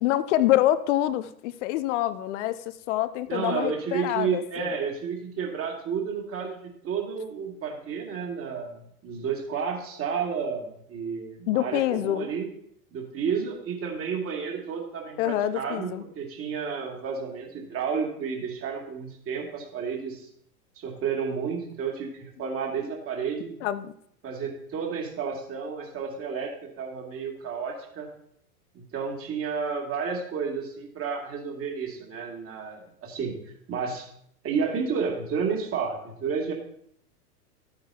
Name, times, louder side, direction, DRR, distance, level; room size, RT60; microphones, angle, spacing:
voice 1, 0.0-4.7 11.5-12.3 15.2-16.0 23.6-23.9, left 14 dB, 50° left, 14 dB, 0.8 m, -26 dB
voice 2, 3.3-6.6 6.8-12.5 12.9-20.3 20.8-23.5 24.2-28.1 28.7-33.4 33.7-34.0 34.4-36.5, right 6 dB, 30° right, 1 dB, 2.6 m, -31 dB
13.0 x 8.8 x 2.9 m, 0.67 s
hypercardioid pair, 100°, 47 cm